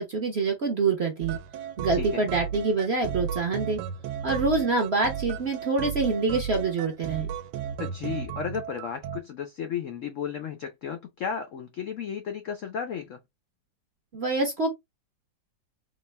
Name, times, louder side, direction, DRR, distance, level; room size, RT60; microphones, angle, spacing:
voice 1, 0.0-1.4 1.8-3.8 4.2-7.3 14.1-14.7, right 3 dB, 55° right, 0.7 m, -26 dB
sound 1, 1.2-9.2, right 8 dB, 75° right, 1.1 m, -34 dB
voice 2, 1.9-2.3 7.8-13.2, left 7 dB, 85° left, 0.6 m, -34 dB
3.9 x 2.4 x 3.1 m
omnidirectional pair, 2.0 m